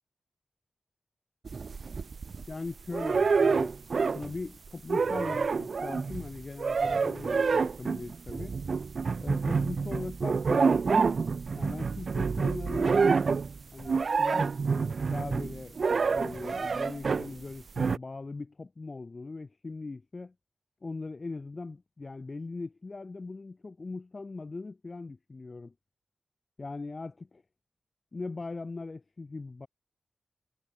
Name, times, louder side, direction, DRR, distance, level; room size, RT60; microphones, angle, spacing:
sound 1, 1.4-2.5 2.9-4.4 4.7-17.3 17.8-18.0, right 5 dB, 70° right, 0.5 m, -28 dB
voice 1, 2.5-3.8 4.1-8.6 9.2-11.1 11.6-13.0 13.7-14.5 15.1-15.8 16.0-20.3 20.8-25.7 26.6-27.4 28.1-29.7, left 3 dB, 50° left, 7.7 m, -40 dB
cardioid pair, 40°, 0 cm